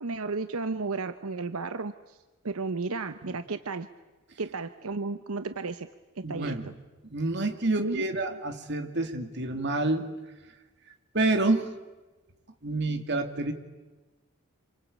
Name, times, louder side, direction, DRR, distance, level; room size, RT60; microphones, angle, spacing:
voice 1, 0.0-2.2 2.4-3.9 4.4-5.9 6.2-6.7 7.8-8.4, right 3 dB, 85° right, 11 dB, 0.9 m, -33 dB
voice 2, 6.2-6.6 7.1-10.1 11.1-11.7 12.6-13.5, right 2 dB, 55° right, 6 dB, 2.5 m, -28 dB
27.0 x 25.0 x 8.6 m, 1.2 s
head